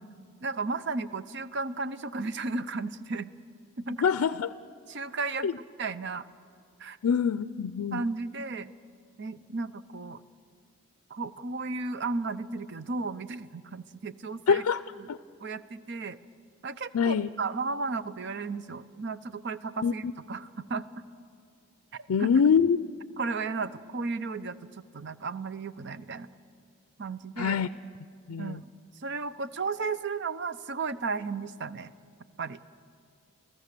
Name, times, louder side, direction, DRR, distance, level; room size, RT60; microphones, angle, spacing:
voice 1, 0.4-3.3 3.8-4.0 4.9-5.5 5.8-6.2 6.8-7.0 7.9-8.7 9.2-10.2 11.1-14.6 15.4-16.2 16.6-20.0 20.3-21.0 21.9-22.3 23.2-24.6 24.9-26.3 27.0-27.6 28.4-28.7 29.0-31.9 32.4-32.6, right 4 dB, 50° right, 13 dB, 0.6 m, -34 dB
voice 2, 4.0-4.5 5.4-5.6 7.0-8.0 14.5-14.8 15.1-15.2 16.9-17.3 19.8-20.1 22.1-22.9 27.4-27.7 28.3-28.6, left 6 dB, 85° left, 13 dB, 0.4 m, -25 dB
29.5 x 15.5 x 6.8 m, 2.3 s
head